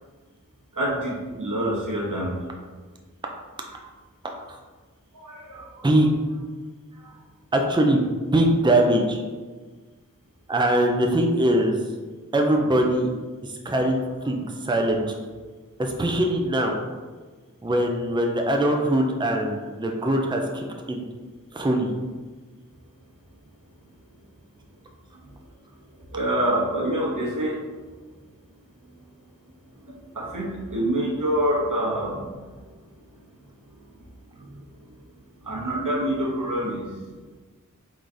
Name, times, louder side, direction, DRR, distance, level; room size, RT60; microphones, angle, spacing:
voice 1, 0.7-2.5 3.7-3.8 5.1-5.9 6.9-7.1 26.1-27.6 29.8-32.4 34.4-34.6 35.4-37.0, right 1 dB, 85° right, -5 dB, 1.1 m, -27 dB
voice 2, 4.2-4.6 5.8-6.1 7.5-9.2 10.5-11.7 12.3-13.1 13.4-15.2 15.8-16.7 17.6-21.0 21.5-21.9, right 1 dB, 15° right, 2 dB, 0.5 m, -22 dB
3.8 x 3.2 x 3.9 m, 1.4 s
wide cardioid pair, 40°, 31 cm